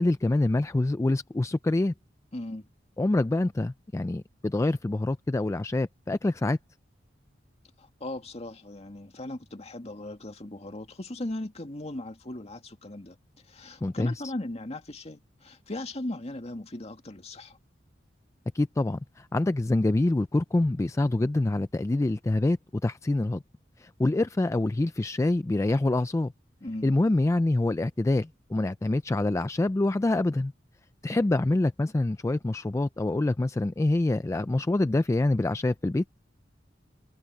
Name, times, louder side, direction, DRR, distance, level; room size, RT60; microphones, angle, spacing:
voice 1, 0.0-1.9 3.0-6.6 13.8-14.1 18.5-22.6 22.8-23.4 23.8-26.3 26.8-30.5 31.0-36.0, left 2 dB, 15° left, 0.3 m, -26 dB
voice 2, 2.3-2.7 7.8-13.2 13.4-17.6 26.6-27.0, left 1 dB, 35° left, 2.1 m, -38 dB
head